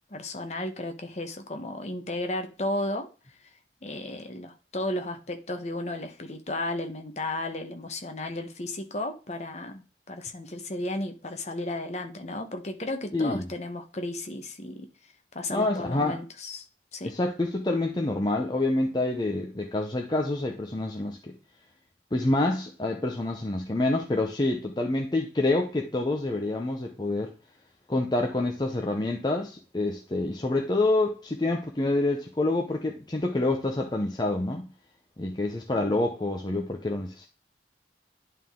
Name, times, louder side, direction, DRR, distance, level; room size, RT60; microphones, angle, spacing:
voice 1, 0.1-3.1 3.4-3.5 3.8-16.6 16.9-17.1, left 1 dB, 40° left, 1.1 m, -34 dB
voice 2, 13.1-13.5 15.5-16.2 17.0-21.3 22.1-27.3 27.9-34.7 35.2-37.3, left 2 dB, 25° left, 0.7 m, -27 dB
11.0 x 3.8 x 3.6 m
head